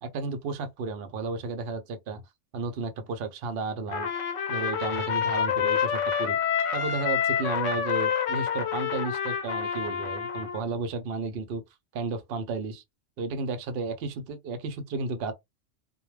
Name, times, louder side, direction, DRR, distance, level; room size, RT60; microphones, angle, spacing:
voice 1, 0.0-2.2 2.5-4.1 4.5-6.4 6.7-11.6 11.9-12.8 13.2-15.3, right 4 dB, 60° right, 0.7 m, -33 dB
Trumpet, 3.9-10.6, left 8 dB, 80° left, 0.9 m, -28 dB
2.3 x 2.1 x 3.1 m
omnidirectional pair, 1.3 m